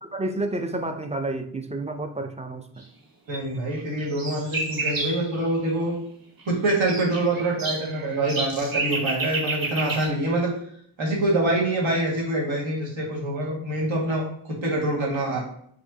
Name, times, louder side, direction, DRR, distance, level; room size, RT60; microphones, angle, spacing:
voice 1, 0.0-2.8, right 2 dB, 15° right, 5 dB, 0.4 m, -30 dB
sound 1, 3.3-3.4 3.7-5.3 6.5-10.1, right 3 dB, 45° right, 1.4 m, -30 dB
voice 2, 3.3-5.9 6.5-10.5 11.0-15.4, right 1 dB, 75° right, -3 dB, 1.9 m, -25 dB
5.0 x 3.5 x 2.7 m, 0.66 s
wide cardioid pair, 100°, 47 cm